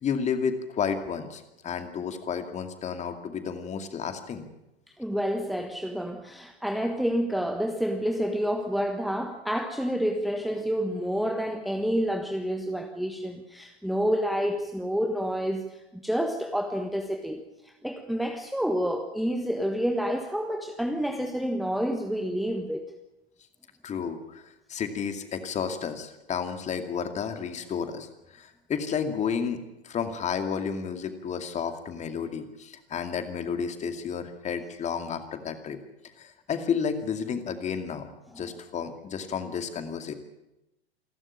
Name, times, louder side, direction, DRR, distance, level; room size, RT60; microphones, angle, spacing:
voice 1, 0.0-4.5 23.8-35.8 36.2-38.1 38.3-40.1, left 6 dB, 20° left, 8 dB, 2.4 m, -32 dB
voice 2, 5.0-22.9, equal, ahead, 5 dB, 1.3 m, -29 dB
28.0 x 12.5 x 9.9 m, 0.94 s
figure-of-eight pair, 95°, 32 cm